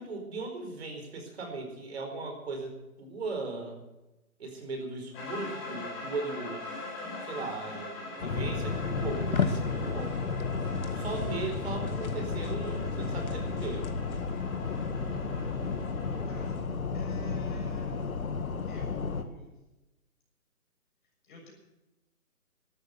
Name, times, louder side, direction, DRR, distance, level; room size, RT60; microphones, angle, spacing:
voice 1, 0.0-2.7 3.0-3.8 4.4-6.7 7.2-10.2 10.9-13.9, right 3 dB, 45° right, 3 dB, 4.7 m, -38 dB
sound 1, 5.1-16.6, left 2 dB, 15° left, 5.5 m, -43 dB
sound 2, 8.2-19.2, left 5 dB, 70° left, 2.0 m, -32 dB
sound 3, 11.8-17.8, left 1 dB, 75° right, 3.3 m, -43 dB
voice 2, 16.2-16.6 16.9-18.2 18.7-19.6 21.2-21.5, left 3 dB, 35° left, -1 dB, 6.9 m, -50 dB
13.0 x 13.0 x 8.1 m, 1.0 s
hypercardioid pair, 170°, 43 cm